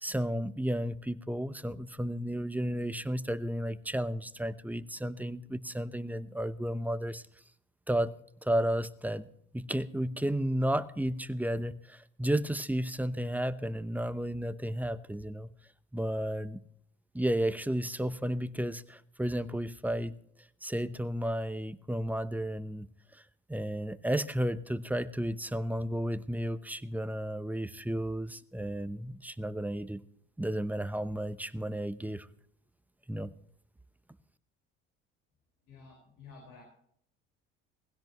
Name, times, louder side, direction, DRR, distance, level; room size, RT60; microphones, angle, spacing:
voice 1, 0.0-7.2 7.9-8.1 8.4-9.2 9.5-15.5 15.9-16.6 17.1-20.1 20.6-22.9 23.5-30.0 30.4-32.3 33.1-33.3, right 1 dB, 5° right, 13 dB, 0.8 m, -33 dB
voice 2, 35.6-36.6, left 4 dB, 75° left, 1 dB, 5.0 m, -52 dB
20.5 x 16.0 x 3.0 m, 0.68 s
supercardioid pair, 75°, 31 cm